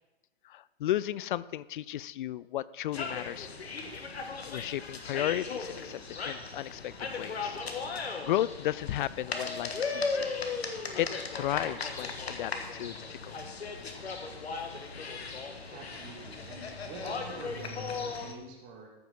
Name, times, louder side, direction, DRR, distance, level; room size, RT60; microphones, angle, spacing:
voice 1, 0.4-3.5 4.5-7.6 8.3-10.3 11.0-13.4, left 13 dB, 55° left, 19 dB, 0.4 m, -34 dB
sound 1, 2.9-18.3, left 4 dB, 85° left, 1.5 m, -37 dB
voice 2, 15.7-18.9, right 4 dB, 35° right, 1 dB, 2.7 m, -47 dB
14.0 x 6.0 x 5.6 m, 1.0 s
hypercardioid pair, 120°, 31 cm